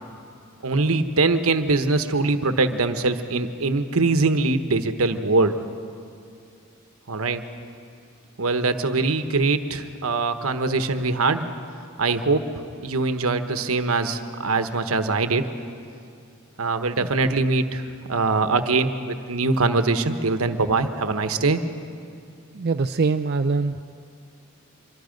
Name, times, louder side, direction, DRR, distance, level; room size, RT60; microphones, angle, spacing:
voice 1, 0.6-5.5 7.1-7.4 8.4-11.4 12.0-12.5 12.8-15.5 16.6-17.8 18.1-21.6, right 3 dB, 80° right, 9 dB, 1.1 m, -22 dB
voice 2, 22.5-23.8, right 4 dB, 50° right, 8 dB, 0.4 m, -23 dB
24.5 x 24.0 x 5.2 m, 2.5 s
head